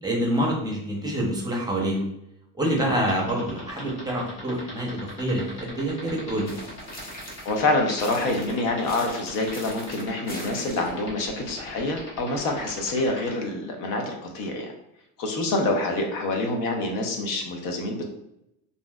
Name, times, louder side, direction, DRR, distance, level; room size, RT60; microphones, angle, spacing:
voice 1, 0.0-2.1 2.6-6.5, right 1 dB, 10° right, -2 dB, 0.7 m, -26 dB
sound 1, 3.0-13.3, left 2 dB, 90° left, 1.4 m, -41 dB
sound 2, 6.5-7.6 8.0-11.0, left 1 dB, 25° left, 0.8 m, -42 dB
voice 2, 7.4-14.7 15.2-18.1, left 2 dB, 65° left, 2 dB, 0.7 m, -26 dB
3.0 x 2.7 x 2.3 m, 0.81 s
cardioid pair, 120°, 35 cm